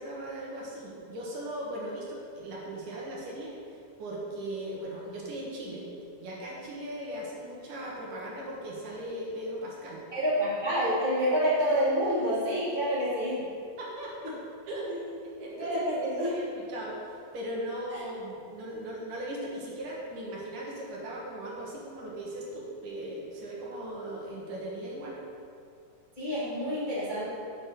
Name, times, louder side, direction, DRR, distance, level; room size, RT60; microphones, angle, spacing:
voice 1, 0.0-3.6 4.0-5.9 6.2-10.0 13.8-14.3 14.7-14.9 15.4-25.2, right 1 dB, 70° right, -4 dB, 3.0 m, -38 dB
voice 2, 10.1-13.4 14.2-14.3 14.9-15.1 15.6-16.3 17.9-18.0 26.2-27.3, equal, 20° left, -9 dB, 1.2 m, -28 dB
6.4 x 6.4 x 6.4 m, 2.3 s
omnidirectional pair, 3.8 m